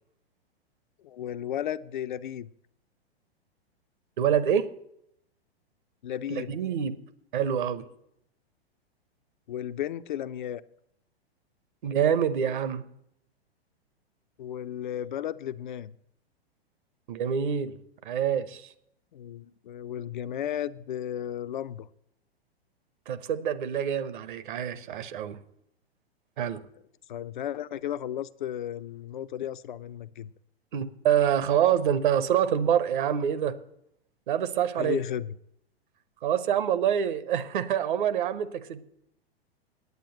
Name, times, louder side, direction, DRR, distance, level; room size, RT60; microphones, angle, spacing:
voice 1, 1.0-2.5 6.0-6.5 9.5-10.6 14.4-15.9 19.1-21.9 27.1-30.3 34.8-35.3, left 10 dB, 50° left, 0.5 m, -34 dB
voice 2, 4.2-4.7 6.3-7.0 7.3-7.9 11.8-12.8 17.1-17.8 18.0-18.7 23.1-25.4 26.4-26.6 30.7-33.5 34.3-35.0 36.2-38.8, right 9 dB, 50° right, 0.9 m, -26 dB
9.4 x 8.9 x 7.7 m
figure-of-eight pair, 105°, 32 cm